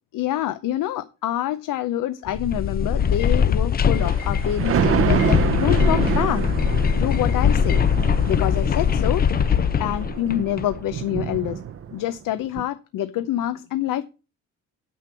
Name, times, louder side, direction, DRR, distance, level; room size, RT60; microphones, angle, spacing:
voice 1, 0.1-6.4 7.0-7.8 8.3-11.6 11.9-14.0, left 12 dB, 85° left, 0.7 m, -26 dB
sound 1, 2.3-10.8, left 7 dB, 30° left, 0.4 m, -21 dB
Thunder, 3.8-12.2 12.6-12.7, right 8 dB, 45° right, 0.7 m, -27 dB
9.2 x 6.1 x 5.7 m
cardioid pair, 140°, 32 cm